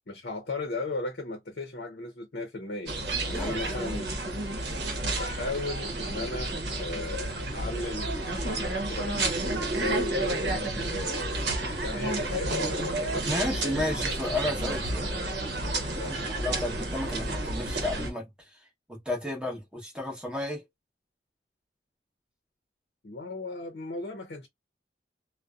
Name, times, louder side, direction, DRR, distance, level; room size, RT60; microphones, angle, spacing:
voice 1, 0.1-4.2 5.2-11.4 11.8-14.1 16.0-16.2 23.0-24.5, left 2 dB, 65° left, 0.7 m, -36 dB
sound 1, 2.9-18.1, right 2 dB, 80° right, 0.8 m, -31 dB
voice 2, 3.3-3.8 13.2-15.2 16.1-20.7, left 1 dB, 5° right, 0.9 m, -33 dB
2.5 x 2.1 x 2.3 m
head